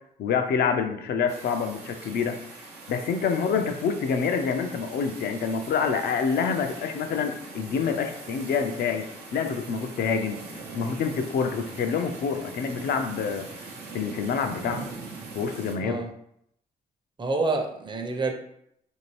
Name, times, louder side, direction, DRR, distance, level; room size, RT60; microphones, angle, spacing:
voice 1, 0.2-2.3 2.9-9.0 9.3-10.4 10.7-13.5 13.9-14.8 15.3-16.0, left 6 dB, 75° left, 5 dB, 0.5 m, -27 dB
sound 1, 1.3-15.8, right 3 dB, 90° right, 0.6 m, -42 dB
voice 2, 17.2-18.3, right 3 dB, 30° right, 3 dB, 0.6 m, -27 dB
2.7 x 2.5 x 3.1 m, 0.73 s
supercardioid pair, 60°, 17 cm